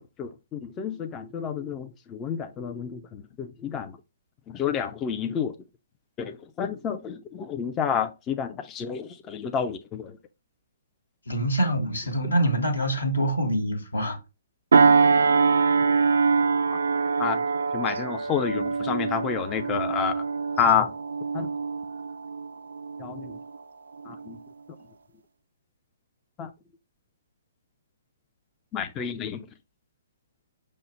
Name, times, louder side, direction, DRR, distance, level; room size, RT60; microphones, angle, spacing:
voice 1, 0.0-3.9 4.5-5.5 6.2-10.2 17.2-17.4 17.7-20.2 20.6-20.9 21.3-21.5 23.0-23.4 24.1-24.4 26.4-26.5 28.7-29.4, left 7 dB, 20° left, 0.4 m, -29 dB
voice 2, 11.3-14.2, right 1 dB, 80° left, 1.2 m, -25 dB
sound 1, 14.7-23.6 24.0-24.3, right 5 dB, 70° right, 0.3 m, -24 dB
5.5 x 2.0 x 4.2 m
figure-of-eight pair, 125°, 0 cm